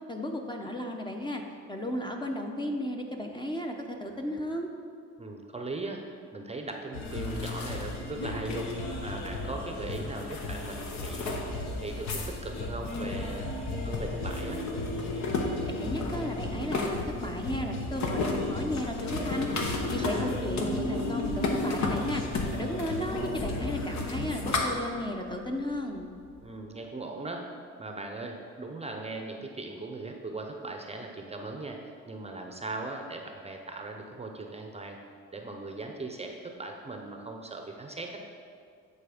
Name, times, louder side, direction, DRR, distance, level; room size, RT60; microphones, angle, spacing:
voice 1, 0.1-1.4 1.7-4.7 15.7-19.5 19.9-22.2 22.5-26.1, left 1 dB, 15° left, 2 dB, 0.8 m, -34 dB
voice 2, 5.2-6.0 6.3-8.7 9.0-11.3 11.8-13.5 13.8-14.6 20.0-20.3 26.4-27.5 27.8-31.8 32.1-35.0 35.3-38.2, right 2 dB, 20° right, 3 dB, 0.6 m, -39 dB
sound 1, 6.9-24.6, left 2 dB, 65° left, 1.1 m, -33 dB
sound 2, 7.0-26.6, left 3 dB, 50° left, 1.6 m, -47 dB
9.4 x 4.1 x 5.1 m, 2.3 s
cardioid pair, 90°, 30 cm